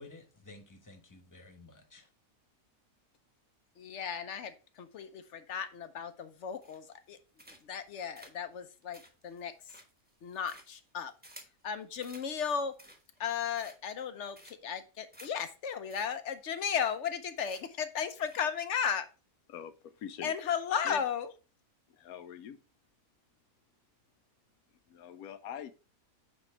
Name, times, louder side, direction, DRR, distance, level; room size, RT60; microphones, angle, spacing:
voice 1, 0.0-2.1, left 2 dB, 15° left, 1.1 m, -53 dB
voice 2, 3.8-7.2 7.6-9.5 10.2-11.1 11.6-12.7 13.2-19.1 20.2-21.3, left 7 dB, 60° left, 0.9 m, -35 dB
sound 1, 6.6-7.0 7.4-7.8 8.2-11.6 12.0-12.3 12.7-13.2 13.5-14.0 14.4-14.8 15.1-15.3 15.6-15.7 15.9-16.1 16.3-16.4 16.7-17.2 17.5-17.8 18.2-18.4, right 1 dB, 5° right, 1.1 m, -54 dB
voice 3, 19.5-20.4 20.8-21.0 21.9-22.6 24.9-25.7, left 9 dB, 85° left, 1.1 m, -44 dB
9.0 x 3.1 x 4.4 m
omnidirectional pair, 1.5 m